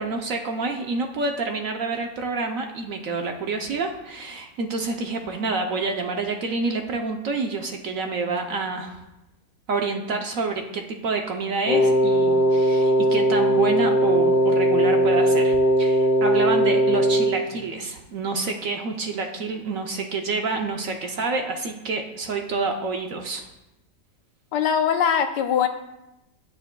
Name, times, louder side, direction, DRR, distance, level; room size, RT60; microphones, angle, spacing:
voice 1, 0.0-9.0 9.7-23.5, right 3 dB, 65° right, 4 dB, 0.9 m, -28 dB
Wind instrument woodwind instrument, 11.7-17.4, right 1 dB, 55° left, 1.4 m, -19 dB
voice 2, 24.5-25.7, left 7 dB, 85° left, 7 dB, 1.3 m, -21 dB
10.0 x 8.8 x 2.2 m, 0.94 s
omnidirectional pair, 1.8 m